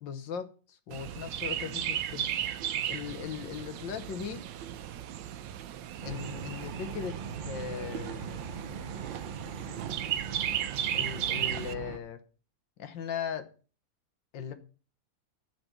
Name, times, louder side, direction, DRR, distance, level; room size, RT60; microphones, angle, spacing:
voice 1, 0.0-2.3 2.9-4.4 6.1-7.1 7.5-8.4 10.9-12.2 12.8-13.5 14.3-14.5, left 7 dB, 85° left, 1.8 m, -38 dB
Chirp tweet, 0.9-11.7, right 10 dB, 85° right, 1.4 m, -35 dB
sound 1, 6.0-12.0, right 6 dB, 60° right, 0.5 m, -41 dB
8.2 x 6.0 x 7.4 m
omnidirectional pair, 2.0 m